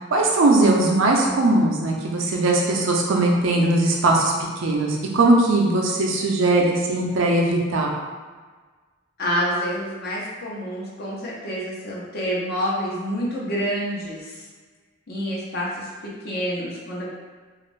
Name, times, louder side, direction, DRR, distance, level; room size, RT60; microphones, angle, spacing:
voice 1, 0.1-7.9, right 2 dB, 70° right, -1 dB, 0.5 m, -19 dB
voice 2, 9.2-14.5 15.1-15.9 16.2-17.2, equal, 50° left, -5 dB, 0.7 m, -28 dB
2.5 x 2.4 x 3.1 m, 1.4 s
head